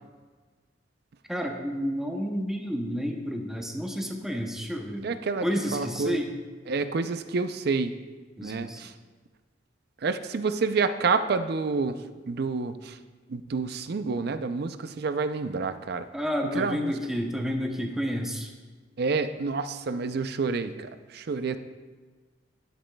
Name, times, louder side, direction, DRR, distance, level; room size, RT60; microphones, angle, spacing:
voice 1, 1.3-5.1 5.4-6.3 8.4-8.8 16.1-18.5, equal, 5° right, 2 dB, 0.6 m, -30 dB
voice 2, 5.0-6.2 6.7-7.9 8.4-8.9 10.0-12.0 12.3-13.0 13.3-16.1 16.4-16.9 19.0-21.6, right 4 dB, 60° right, 11 dB, 0.5 m, -28 dB
11.0 x 10.0 x 2.3 m, 1.4 s
head